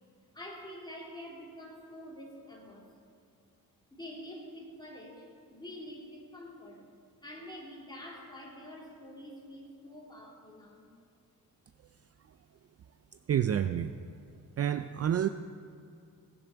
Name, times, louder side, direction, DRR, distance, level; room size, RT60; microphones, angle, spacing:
voice 1, 0.3-2.9 3.9-6.9 7.2-10.9, left 1 dB, 10° left, -3 dB, 3.5 m, -47 dB
voice 2, 13.3-13.9 14.6-15.3, right 9 dB, 45° right, 10 dB, 0.4 m, -28 dB
19.0 x 7.2 x 6.8 m, 2.4 s
cardioid pair, 100°, 35 cm